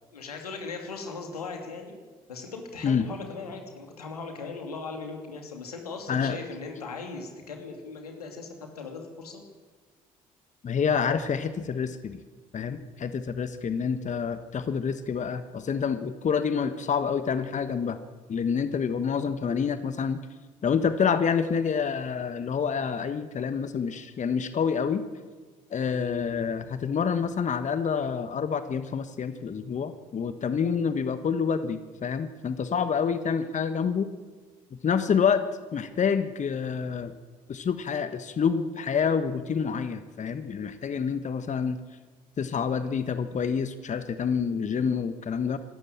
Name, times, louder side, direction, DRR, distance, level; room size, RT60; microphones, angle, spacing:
voice 1, 0.1-2.0 2.3-9.4, left 4 dB, 85° left, 4 dB, 2.8 m, -38 dB
voice 2, 6.1-6.4 6.7-6.8 10.6-12.2 12.5-18.0 18.3-20.2 20.6-25.0 25.7-34.1 34.8-35.4 35.7-37.1 37.5-41.8 42.4-45.6, left 6 dB, 40° left, 11 dB, 1.4 m, -27 dB
25.5 x 13.5 x 8.8 m, 1.4 s
figure-of-eight pair, 50°, 19 cm